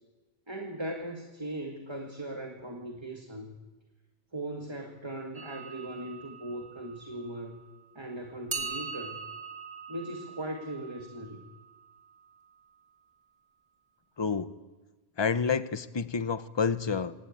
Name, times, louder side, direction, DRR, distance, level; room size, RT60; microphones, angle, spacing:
voice 1, 0.5-3.6 4.3-7.6 8.0-9.2 9.9-11.4, right 1 dB, 25° right, 3 dB, 1.9 m, -39 dB
sound 1, 5.3-7.8 8.5-12.4, right 5 dB, 75° right, 3.0 m, -42 dB
voice 2, 14.2-14.5 15.2-17.1, left 5 dB, 25° left, 12 dB, 0.8 m, -29 dB
26.0 x 19.0 x 8.8 m, 1.2 s
omnidirectional pair, 1.1 m